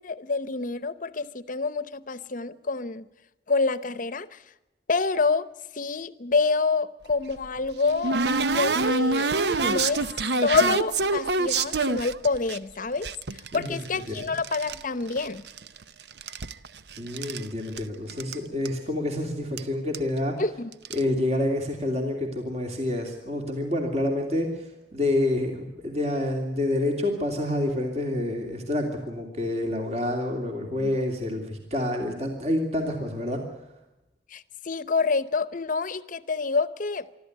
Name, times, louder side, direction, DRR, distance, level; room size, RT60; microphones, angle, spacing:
voice 1, 0.0-3.1 3.5-4.4 4.9-5.5 5.7-8.2 8.5-9.3 9.6-10.0 10.4-15.4 20.4-20.7 30.8-30.9 34.3-37.1, left 4 dB, 45° left, 15 dB, 0.9 m, -27 dB
sound 1, 7.1-12.6 13.0-14.8 15.1-15.8 16.1-17.5 17.8-17.9 18.1-18.4 18.7-18.8 19.6-19.7 19.9-20.2 20.7-21.0, right 3 dB, 65° right, 0.8 m, -26 dB
voice 2, 17.0-20.4 20.9-33.4, left 1 dB, 35° right, 2 dB, 2.9 m, -28 dB
25.0 x 13.5 x 9.4 m, 1.0 s
head